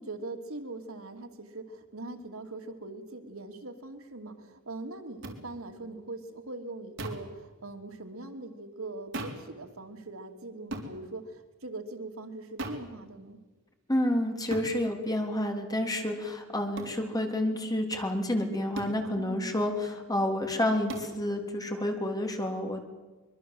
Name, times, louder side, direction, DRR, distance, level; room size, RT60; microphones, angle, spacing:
voice 1, 0.0-13.4 19.1-19.6, right 2 dB, 85° right, 6 dB, 2.6 m, -41 dB
sound 1, 5.2-5.4 7.0-7.3 9.1-9.5 10.7-10.9 12.6-12.9 14.5-14.7 16.8-17.0 18.7-19.0 20.9-21.1, right 1 dB, 65° right, 3.8 m, -37 dB
voice 2, 13.9-22.9, left 1 dB, 20° left, 4 dB, 3.5 m, -29 dB
24.5 x 23.0 x 7.8 m, 1.3 s
head